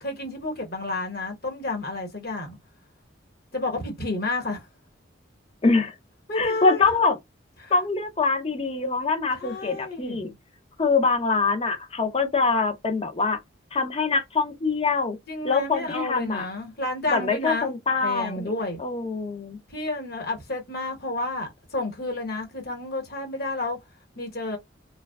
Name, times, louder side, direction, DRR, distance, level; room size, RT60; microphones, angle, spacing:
voice 1, 0.0-2.6 3.5-4.7 6.3-6.8 7.6-7.7 9.4-10.4 15.3-18.8 19.7-23.8 24.2-24.6, left 2 dB, 50° left, 1.1 m, -31 dB
voice 2, 5.6-5.9 6.3-7.2 7.7-10.3 10.8-13.4 13.7-15.2 15.4-16.5 17.1-18.5 18.8-19.6, left 4 dB, 30° left, 0.5 m, -24 dB
3.0 x 2.3 x 2.3 m
head